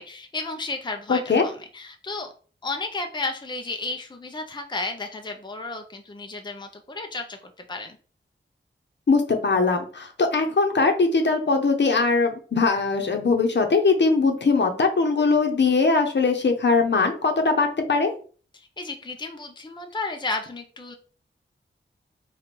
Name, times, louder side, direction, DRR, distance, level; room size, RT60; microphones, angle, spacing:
voice 1, 0.0-2.3 2.6-8.0 18.5-20.9, left 3 dB, 20° left, 4 dB, 0.6 m, -33 dB
voice 2, 1.1-1.5 9.1-18.1, left 4 dB, 60° left, 4 dB, 0.9 m, -21 dB
4.3 x 2.5 x 4.5 m, 0.40 s
wide cardioid pair, 65°, 20 cm